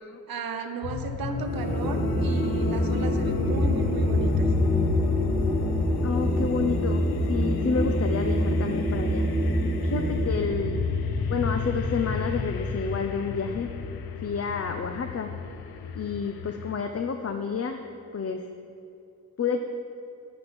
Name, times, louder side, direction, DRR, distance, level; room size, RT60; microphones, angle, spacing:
voice 1, 0.3-4.5, right 5 dB, 70° right, 5 dB, 0.9 m, -35 dB
sound 1, 0.8-16.8, left 6 dB, 90° left, 0.6 m, -32 dB
sound 2, 1.2-11.4, left 9 dB, 65° left, 1.5 m, -41 dB
sound 3, 1.4-12.7, equal, 5° left, 2.5 m, -26 dB
voice 2, 6.0-9.3 9.8-10.8 11.3-13.7 14.2-15.3 15.9-17.8 18.1-18.4 19.4-19.6, left 5 dB, 40° left, 6 dB, 0.6 m, -29 dB
9.9 x 9.5 x 5.2 m, 2.8 s
cardioid pair, 55°, 36 cm